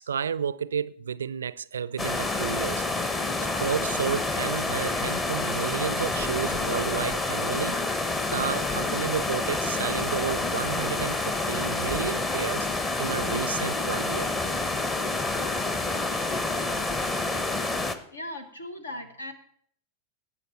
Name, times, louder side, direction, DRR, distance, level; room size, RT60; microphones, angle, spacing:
voice 1, 0.0-2.8 3.5-7.8 8.3-12.7 13.0-14.3, right 7 dB, 70° right, 0.4 m, -31 dB
sound 1, 2.0-17.9, left 2 dB, 20° left, 1.0 m, -28 dB
voice 2, 18.1-19.3, left 1 dB, 75° left, 1.4 m, -38 dB
18.0 x 6.8 x 4.2 m
figure-of-eight pair, 90°, 0 cm